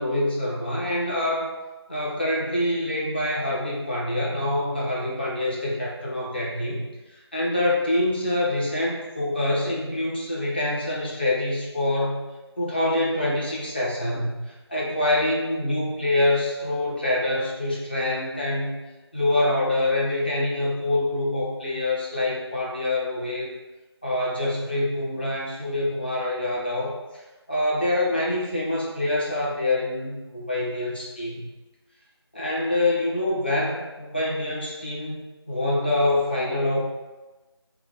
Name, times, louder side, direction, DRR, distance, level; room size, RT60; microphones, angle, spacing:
voice 1, 0.0-1.5 1.9-6.8 7.1-12.3 12.6-18.8 19.1-23.5 24.0-27.2 27.5-31.5 32.3-35.2 35.5-36.8, left 1 dB, 20° left, -6 dB, 0.7 m, -25 dB
5.1 x 2.0 x 4.5 m, 1.1 s
figure-of-eight pair, 175°, 14 cm